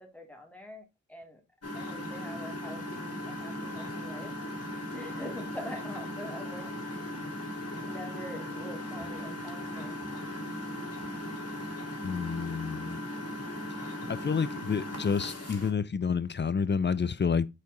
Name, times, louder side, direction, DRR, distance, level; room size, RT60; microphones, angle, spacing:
voice 1, 0.0-1.4 1.7-7.2 7.8-10.0, left 1 dB, 5° left, 2.1 m, -45 dB
Engine, 1.6-15.7, left 1 dB, 55° left, 1.8 m, -38 dB
voice 2, 12.0-13.0 14.1-17.5, left 6 dB, 40° left, 0.4 m, -29 dB
6.7 x 4.1 x 3.8 m
wide cardioid pair, 85°, 29 cm